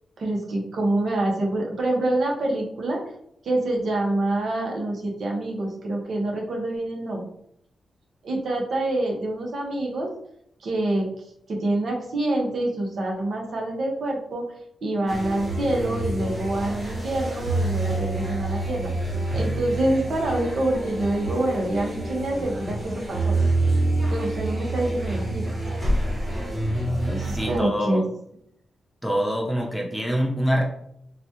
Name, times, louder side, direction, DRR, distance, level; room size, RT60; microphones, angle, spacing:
voice 1, 0.2-3.0 3.4-7.3 8.2-10.1 10.6-11.1 11.5-14.4 14.8-18.9 19.3-23.4 24.1-25.5 27.1-28.0, right 1 dB, 65° right, -1 dB, 1.0 m, -26 dB
sound 1, 15.1-27.6, right 2 dB, 25° right, 1.2 m, -27 dB
voice 2, 27.4-28.1 29.0-30.6, equal, ahead, -1 dB, 0.8 m, -24 dB
3.9 x 2.3 x 3.0 m, 0.73 s
cardioid pair, 100°, 0 cm